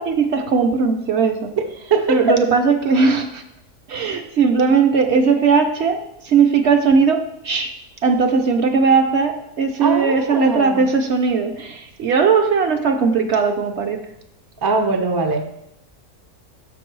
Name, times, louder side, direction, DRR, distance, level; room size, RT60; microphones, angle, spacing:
voice 1, 0.0-1.5 2.1-3.4 3.9-7.7 8.0-14.0, right 5 dB, 60° right, 5 dB, 0.8 m, -18 dB
voice 2, 1.9-2.4 9.8-10.9 14.6-15.5, right 3 dB, 35° right, 5 dB, 0.3 m, -21 dB
6.7 x 5.3 x 4.5 m, 0.79 s
omnidirectional pair, 1.5 m